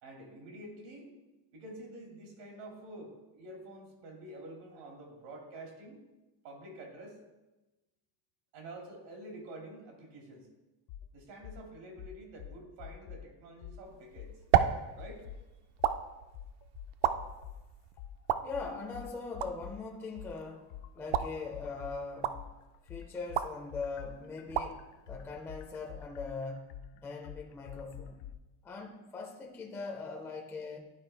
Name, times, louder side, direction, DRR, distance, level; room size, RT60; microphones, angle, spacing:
voice 1, 0.0-1.1 1.5-6.0 6.4-7.2 8.5-10.5 11.1-14.4 15.0-15.3, right 1 dB, 90° right, 1 dB, 2.2 m, -48 dB
sound 1, 10.9-11.1 11.4-11.6 12.0-13.3 13.6-13.8 14.2-15.4 15.8-16.0 16.3-17.6 18.0-22.0 22.3-28.3, left 11 dB, 60° left, 0.5 m, -46 dB
sound 2, 13.8-26.0, right 10 dB, 60° right, 0.5 m, -35 dB
voice 2, 18.4-20.7 21.0-22.4 22.8-28.2 28.6-30.8, left 4 dB, 5° left, 1 dB, 0.4 m, -41 dB
11.5 x 4.4 x 3.2 m, 1.1 s
cardioid pair, 155°, 47 cm